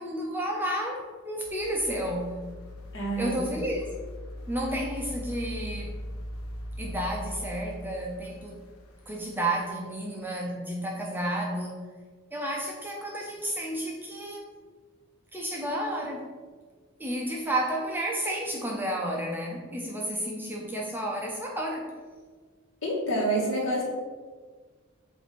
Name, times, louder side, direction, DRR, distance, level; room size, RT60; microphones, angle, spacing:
voice 1, 0.0-2.3 3.2-3.9 4.5-5.9 6.8-8.6 9.1-11.8 12.3-14.5 15.3-16.3 17.0-21.9, right 1 dB, 10° right, -1 dB, 0.6 m, -31 dB
sound 1, 1.4-9.7 10.1-10.2, equal, 85° left, 1.0 m, -40 dB
voice 2, 2.9-3.4 22.8-23.8, right 1 dB, 60° left, -4 dB, 1.7 m, -27 dB
7.5 x 2.7 x 5.2 m, 1.5 s
head